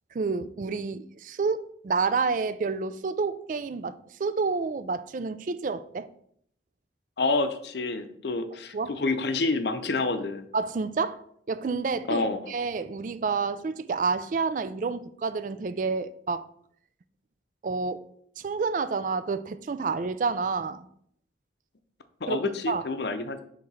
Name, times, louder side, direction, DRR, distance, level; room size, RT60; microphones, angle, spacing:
voice 1, 0.1-6.1 8.7-8.9 10.5-11.2 11.5-16.4 17.6-18.0 18.4-20.9 22.3-22.4 22.7-22.8, right 4 dB, 45° right, 0.3 m, -29 dB
voice 2, 7.2-10.5 12.1-12.5 22.2-23.4, left 3 dB, 70° left, 0.6 m, -28 dB
4.7 x 3.7 x 5.5 m
head